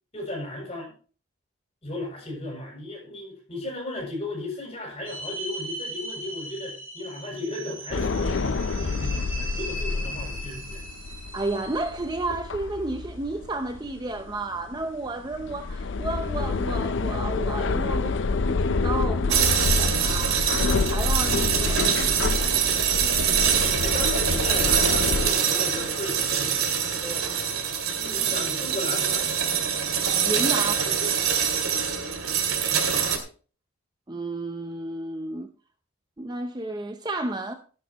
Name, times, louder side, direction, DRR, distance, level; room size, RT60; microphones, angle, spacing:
voice 1, 0.1-0.9 1.8-10.8 23.0-26.7 28.0-29.2 30.6-31.1 32.7-33.0, left 1 dB, 30° left, 7.3 m, -36 dB
sound 1, 5.1-12.2, right 1 dB, 70° right, 5.5 m, -38 dB
sound 2, 7.9-25.3, left 3 dB, 60° left, 0.5 m, -28 dB
voice 2, 11.3-18.1 18.5-20.4 20.9-22.5 27.0-27.3 30.2-30.8 34.1-35.5 36.2-37.5, right 2 dB, 20° right, 0.6 m, -32 dB
sound 3, 19.3-33.2, right 7 dB, 85° right, 2.4 m, -24 dB
13.0 x 11.0 x 3.0 m
head